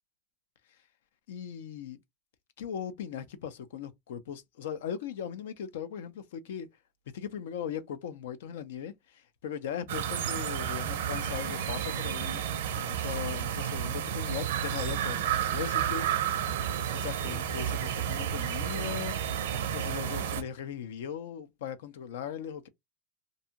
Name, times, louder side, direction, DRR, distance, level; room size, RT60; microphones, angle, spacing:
voice 1, 1.3-2.0 2.6-6.7 7.1-12.4 12.8-16.5 16.9-19.2 19.7-22.7, left 8 dB, 85° left, 0.5 m, -39 dB
sound 1, 9.9-20.4, right 9 dB, 90° right, 0.5 m, -31 dB
2.6 x 2.3 x 2.8 m
supercardioid pair, 150°, 0 cm